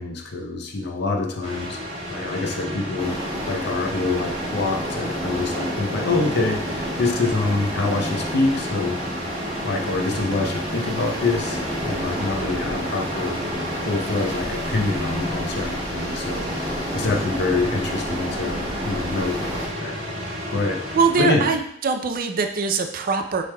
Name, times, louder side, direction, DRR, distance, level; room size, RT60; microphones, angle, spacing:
voice 1, 0.0-1.8 2.1-3.2 3.5-9.0 9.6-11.6 11.8-13.4 13.8-20.0 20.5-20.8 21.2-21.5, left 3 dB, 60° left, 2 dB, 0.6 m, -26 dB
sound 1, 1.4-21.3, equal, 80° right, 1.3 m, -32 dB
sound 2, 3.0-19.7, equal, 20° right, 0.9 m, -31 dB
voice 2, 20.9-23.4, right 4 dB, 50° right, 6 dB, 0.4 m, -22 dB
6.2 x 3.3 x 2.2 m, 0.71 s
head